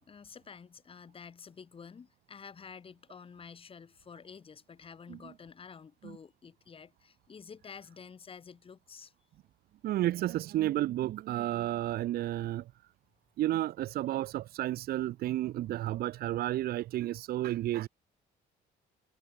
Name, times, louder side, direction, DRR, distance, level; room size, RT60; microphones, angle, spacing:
voice 1, 0.0-9.1, left 6 dB, 35° left, 2.7 m, -50 dB
voice 2, 9.8-12.7 13.4-17.9, right 14 dB, 65° right, 0.9 m, -32 dB
cardioid pair, 110°, 17 cm